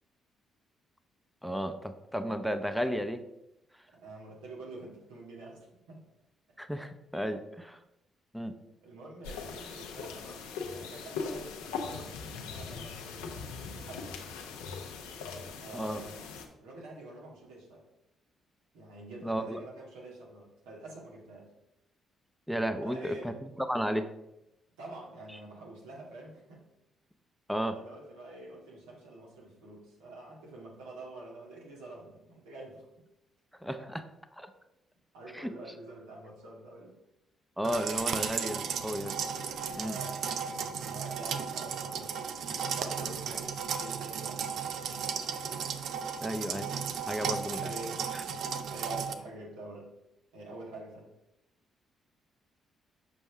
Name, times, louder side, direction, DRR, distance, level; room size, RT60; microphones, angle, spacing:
voice 1, 1.4-3.2 6.6-7.8 8.3-8.5 15.7-16.0 19.2-19.6 22.5-23.3 23.6-24.1 27.5-27.8 33.6-34.0 34.3-34.5 35.3-35.5 37.6-39.2 39.8-40.0 46.2-46.7 47.1-47.7 48.1-48.2, equal, ahead, 9 dB, 0.7 m, -33 dB
voice 2, 3.9-6.0 6.8-6.9 8.8-10.5 10.7-14.2 15.6-17.8 18.7-21.5 22.8-23.4 24.8-26.6 27.7-32.9 33.8-33.9 35.1-36.9 39.8-42.2 42.6-45.1 47.6-48.4 48.7-49.9 50.3-51.1, right 2 dB, 90° right, -3 dB, 1.8 m, -47 dB
sound 1, 9.2-16.4, left 5 dB, 90° left, 0.8 m, -40 dB
sound 2, 37.6-49.1, right 7 dB, 70° right, 0.5 m, -35 dB
7.2 x 5.3 x 3.5 m, 0.87 s
supercardioid pair, 55°, 0 cm